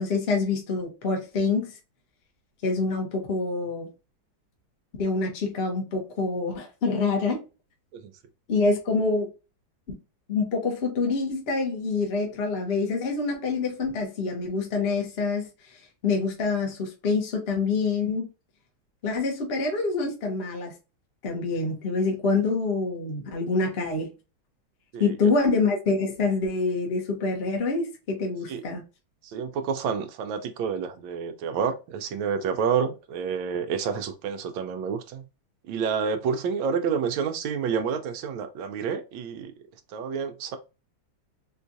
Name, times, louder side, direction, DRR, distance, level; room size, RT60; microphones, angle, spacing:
voice 1, 0.0-1.7 2.6-3.9 5.0-7.4 8.5-9.3 9.9-10.0 10.3-15.5 16.0-18.3 19.0-20.7 21.2-24.1 25.0-28.8, left 4 dB, 40° left, 0.9 m, -26 dB
voice 2, 29.2-35.2 35.7-39.5 39.9-40.6, right 6 dB, 80° right, 1.3 m, -29 dB
4.4 x 2.3 x 2.6 m
omnidirectional pair, 2.2 m